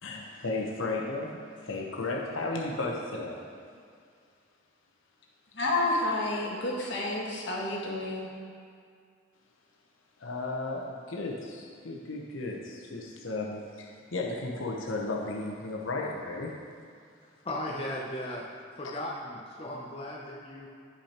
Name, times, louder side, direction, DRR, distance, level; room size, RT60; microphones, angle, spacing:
voice 1, 0.0-3.4 10.2-16.5 18.8-19.0, left 2 dB, 85° left, -1 dB, 1.0 m, -34 dB
voice 2, 5.5-8.3, left 2 dB, 65° left, -3 dB, 1.5 m, -30 dB
voice 3, 17.4-18.4 18.8-20.7, left 1 dB, 30° left, -3 dB, 0.7 m, -36 dB
9.9 x 6.1 x 4.4 m, 2.3 s
head